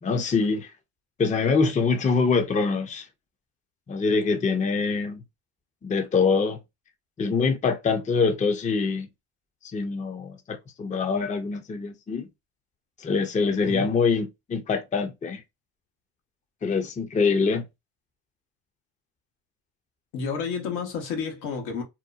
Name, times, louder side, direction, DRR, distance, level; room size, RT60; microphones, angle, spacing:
voice 1, 0.0-0.7 1.2-3.1 3.9-5.2 5.8-6.6 7.2-9.1 9.7-12.3 13.0-15.4 16.6-17.6, left 4 dB, 15° left, 0.5 m, -24 dB
voice 2, 20.1-21.8, left 5 dB, 85° left, 1.1 m, -30 dB
2.9 x 2.1 x 2.3 m
supercardioid pair, 85°, 44 cm